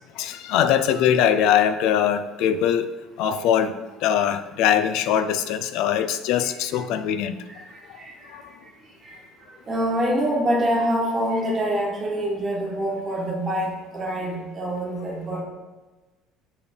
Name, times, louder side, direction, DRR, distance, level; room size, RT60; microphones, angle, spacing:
voice 1, 0.2-2.9 3.2-3.7 4.0-7.4 8.3-8.4, left 9 dB, 60° left, 11 dB, 0.4 m, -22 dB
voice 2, 7.5-8.3 9.0-9.2 9.7-15.4, right 1 dB, 15° right, -2 dB, 1.2 m, -26 dB
7.1 x 3.4 x 4.4 m, 1.2 s
cardioid pair, 175°, 0 cm